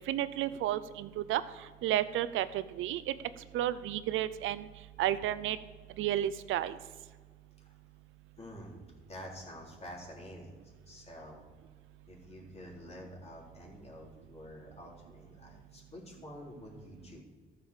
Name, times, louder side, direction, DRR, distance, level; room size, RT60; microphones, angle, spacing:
voice 1, 0.1-1.4 1.8-3.1 3.5-4.7 5.0-5.6 6.0-6.8, right 12 dB, 85° right, 15 dB, 0.6 m, -32 dB
voice 2, 8.4-8.8 9.1-10.6 10.9-11.4 12.1-17.2, left 1 dB, 30° left, -2 dB, 3.7 m, -48 dB
13.5 x 6.7 x 6.7 m, 1.5 s
cardioid pair, 90°, 20 cm